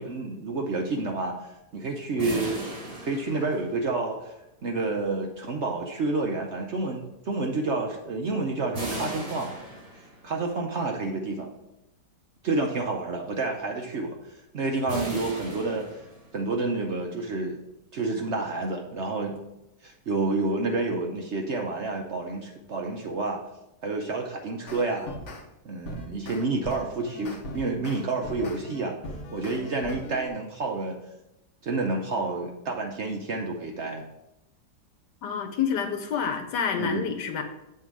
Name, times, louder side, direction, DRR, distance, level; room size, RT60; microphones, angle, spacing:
voice 1, 0.0-1.3 1.7-2.6 3.0-4.3 4.6-9.5 9.9-11.5 12.4-14.2 14.5-15.9 16.3-17.6 17.9-19.4 19.8-23.4 23.8-25.1 25.6-29.0 29.3-31.0 31.6-34.1 36.8-37.1, right 3 dB, 55° right, 2 dB, 0.8 m, -29 dB
sound 1, 2.2-4.1 8.7-10.4 14.9-16.5, right 1 dB, 35° right, 1.8 m, -37 dB
sound 2, 24.7-25.4 25.8-30.3, left 1 dB, 55° left, 1.3 m, -39 dB
voice 2, 35.2-37.4, left 7 dB, 80° left, 7 dB, 1.5 m, -28 dB
7.5 x 3.7 x 6.0 m, 0.90 s
omnidirectional pair, 1.8 m